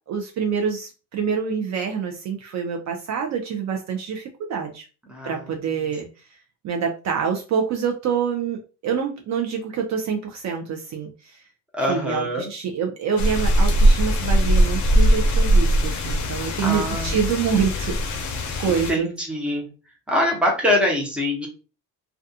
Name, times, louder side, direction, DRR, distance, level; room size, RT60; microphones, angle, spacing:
voice 1, 0.1-4.9 5.2-6.1 6.6-11.4 11.9-18.2 18.6-19.1, right 6 dB, 45° right, 2 dB, 0.5 m, -26 dB
voice 2, 5.1-5.4 11.7-12.5 16.6-17.2 18.7-19.7 20.1-21.5, left 1 dB, 5° right, 0 dB, 0.7 m, -24 dB
sound 1, 13.2-18.9, right 1 dB, 50° left, 0.6 m, -20 dB
2.3 x 2.3 x 2.6 m, 0.33 s
cardioid pair, 130°, 38 cm